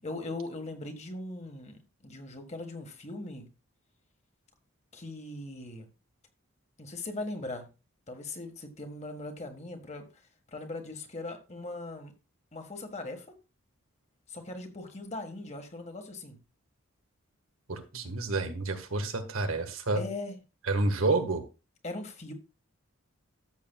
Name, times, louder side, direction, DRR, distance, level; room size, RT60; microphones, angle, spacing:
voice 1, 0.0-3.5 4.9-5.9 6.8-7.7 8.1-10.2 10.5-12.1 12.5-13.3 14.3-16.4 19.9-20.4 21.8-22.3, left 2 dB, 30° left, 5 dB, 1.5 m, -39 dB
voice 2, 17.7-20.0 20.7-21.4, right 3 dB, 85° right, 6 dB, 1.5 m, -29 dB
13.5 x 7.6 x 2.3 m, 0.29 s
head